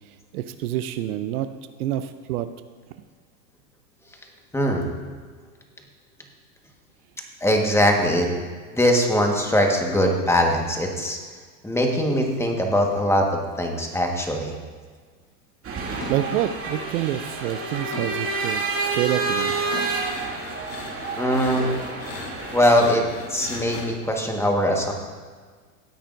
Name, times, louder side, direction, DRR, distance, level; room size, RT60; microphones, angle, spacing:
voice 1, 0.3-1.5 1.8-2.5 16.1-19.5, right 12 dB, 65° right, 11 dB, 0.6 m, -27 dB
voice 2, 4.5-4.9 7.4-8.3 8.7-11.2 11.6-14.5 21.2-21.7 22.5-23.0 23.3-24.9, equal, 5° left, 1 dB, 1.5 m, -21 dB
sound 1, 15.2-15.3 16.0-16.9 17.3-22.1, left 2 dB, 45° left, 3.3 m, -40 dB
sound 2, 15.6-22.8, right 3 dB, 25° right, 2.2 m, -29 dB
sound 3, 18.7-23.9, left 3 dB, 80° left, 2.7 m, -38 dB
16.0 x 8.7 x 2.6 m, 1.5 s
hypercardioid pair, 115°, 49 cm